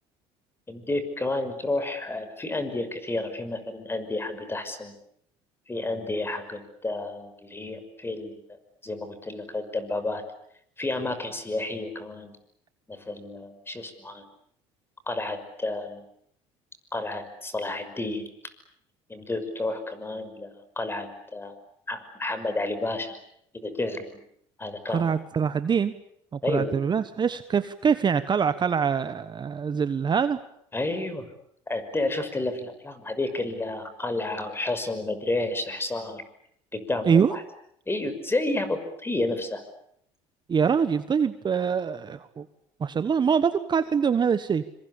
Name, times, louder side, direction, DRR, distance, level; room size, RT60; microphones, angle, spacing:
voice 1, 0.7-4.9 5.7-8.4 8.8-10.2 10.8-12.4 12.9-14.2 15.1-16.0 16.9-18.5 19.1-21.5 21.9-23.2 23.5-24.1 24.6-25.1 26.4-26.7 30.7-31.3 31.7-36.2 36.7-37.4 37.9-39.6, left 2 dB, 15° left, 11 dB, 6.0 m, -31 dB
voice 2, 24.9-26.0 26.3-30.4 37.0-37.3 40.5-42.4 42.8-44.6, right 6 dB, 35° right, 12 dB, 1.3 m, -24 dB
26.0 x 25.0 x 8.6 m, 0.71 s
supercardioid pair, 85°, 14 cm